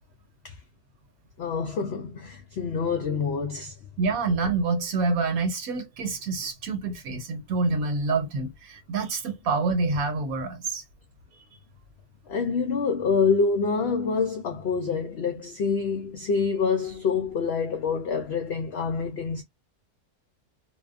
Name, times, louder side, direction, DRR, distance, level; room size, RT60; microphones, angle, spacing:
voice 1, 1.4-3.7 12.3-19.4, left 5 dB, 75° left, 0.6 m, -26 dB
voice 2, 4.0-10.8, right 3 dB, 70° right, 1.2 m, -27 dB
2.7 x 2.2 x 2.3 m
omnidirectional pair, 1.6 m